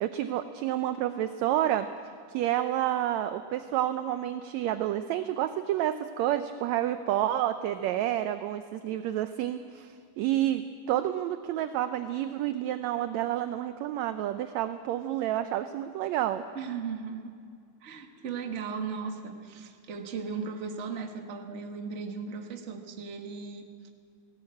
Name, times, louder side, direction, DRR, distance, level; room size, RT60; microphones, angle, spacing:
voice 1, 0.0-1.9 2.3-16.5, right 12 dB, 75° right, 10 dB, 1.8 m, -29 dB
voice 2, 16.5-17.4 17.8-23.9, right 5 dB, 40° right, 4 dB, 1.1 m, -37 dB
19.0 x 18.0 x 8.4 m, 2.2 s
omnidirectional pair, 3.5 m